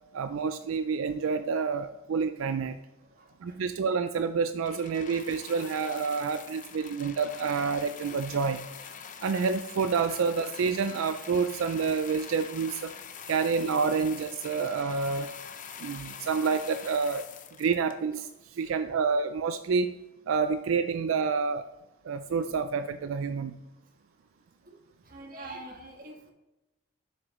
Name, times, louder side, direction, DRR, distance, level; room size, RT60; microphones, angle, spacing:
voice 1, 0.1-2.8 3.4-8.7 9.2-12.9 13.3-15.3 15.8-17.3 17.6-19.9 20.3-21.7 22.0-23.6, right 5 dB, 85° right, 10 dB, 0.4 m, -28 dB
voice 2, 3.2-3.6 18.6-18.9 24.7-24.8 25.1-26.3, right 2 dB, 45° right, 1 dB, 1.4 m, -45 dB
sound 1, 4.6-18.3 19.1-19.2, left 7 dB, 40° left, 0.6 m, -44 dB
7.4 x 6.5 x 3.1 m, 1.0 s
head